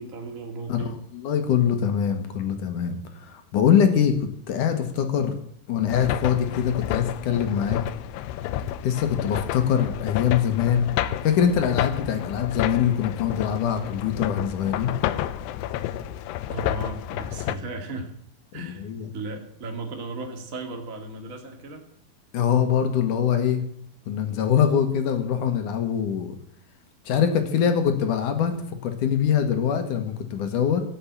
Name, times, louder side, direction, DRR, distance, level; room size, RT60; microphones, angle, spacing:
voice 1, 0.0-1.0 16.5-18.1 18.5-18.8 19.1-21.8, right 2 dB, 35° right, 3 dB, 1.3 m, -35 dB
voice 2, 0.7-5.4 5.7-7.8 8.8-10.9 11.2-14.9 18.5-19.1 22.3-23.6 24.1-26.3 27.1-28.6 28.8-30.8, left 8 dB, 60° left, 7 dB, 2.4 m, -23 dB
sound 1, 5.9-17.6, left 12 dB, 80° left, 2.7 m, -30 dB
17.5 x 7.1 x 8.6 m, 0.68 s
omnidirectional pair, 5.0 m